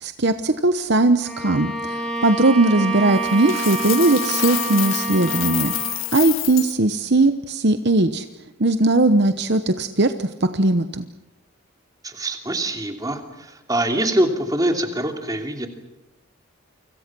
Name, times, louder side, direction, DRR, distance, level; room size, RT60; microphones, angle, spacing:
voice 1, 0.0-5.7 6.1-8.2 8.6-11.1, right 2 dB, 50° right, 9 dB, 1.0 m, -19 dB
Bowed string instrument, 1.2-6.1, right 3 dB, 5° left, 5.5 m, -28 dB
Coin (dropping), 3.2-6.7, left 16 dB, 65° left, 0.8 m, -28 dB
voice 2, 12.0-15.7, right 1 dB, 15° right, 3 dB, 2.8 m, -24 dB
29.5 x 25.5 x 6.2 m, 0.98 s
head